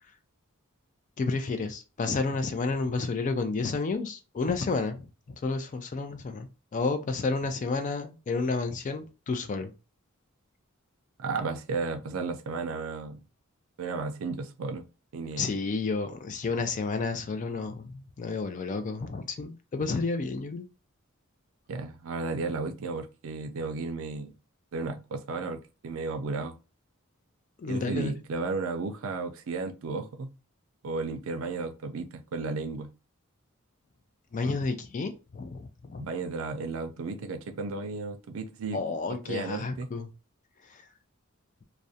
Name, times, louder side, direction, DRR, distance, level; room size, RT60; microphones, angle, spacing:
voice 1, 1.2-9.7 15.4-20.7 27.6-28.1 34.3-36.1 38.7-40.1 40.7-40.8, left 4 dB, 35° left, 0.3 m, -31 dB
voice 2, 11.2-13.2 13.8-14.8 15.1-15.6 21.7-24.3 24.7-26.6 27.7-30.3 30.8-32.9 36.0-38.8 39.3-39.9, right 3 dB, 70° right, 0.4 m, -34 dB
2.4 x 2.1 x 2.6 m
head